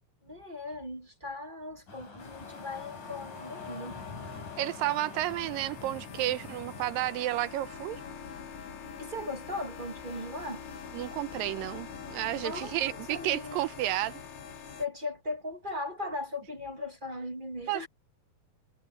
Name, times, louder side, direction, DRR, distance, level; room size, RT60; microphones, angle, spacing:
voice 1, 0.2-4.0 9.0-10.6 12.3-13.6 14.8-17.9, left 2 dB, 25° right, 1.1 m, -38 dB
sound 1, 1.9-7.1, left 3 dB, 55° left, 7.7 m, -47 dB
sound 2, 2.2-14.9, left 6 dB, 75° left, 4.0 m, -44 dB
voice 2, 4.6-8.0 10.9-14.2 17.7-17.9, right 15 dB, 80° right, 2.3 m, -31 dB
omnidirectional pair, 4.3 m